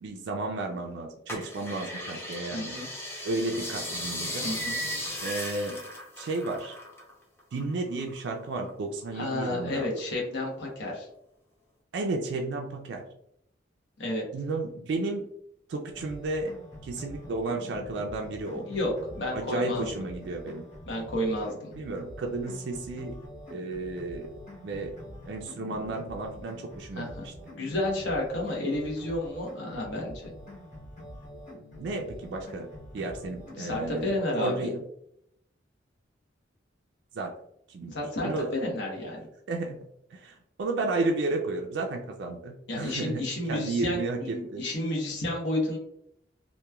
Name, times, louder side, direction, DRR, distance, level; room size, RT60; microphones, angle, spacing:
voice 1, 0.0-2.8 3.2-4.5 5.2-5.8 6.2-6.8 7.5-9.9 11.9-13.0 14.3-15.3 15.7-16.5 16.8-18.6 19.3-20.6 21.8-23.2 23.5-24.3 24.6-24.9 25.3-27.3 31.8-32.7 32.9-34.8 37.1-37.3 37.7-37.9 38.2-38.7 39.5-39.8 40.1-44.6, right 2 dB, 65° right, 2 dB, 0.3 m, -33 dB
sound 1, 1.3-7.1 7.4-8.7 9.2-10.0 10.5-10.6, equal, 10° left, 0.5 m, -36 dB
voice 2, 2.5-2.9 4.4-4.8 9.1-11.1 14.0-14.2 18.6-19.9 20.9-21.7 27.0-27.3 27.5-30.1 33.6-34.7 37.9-39.3 42.7-45.8, left 1 dB, 70° left, -2 dB, 0.8 m, -31 dB
sound 2, 15.9-34.1, left 1 dB, 40° left, 1.4 m, -45 dB
2.9 x 2.2 x 2.2 m, 0.75 s
head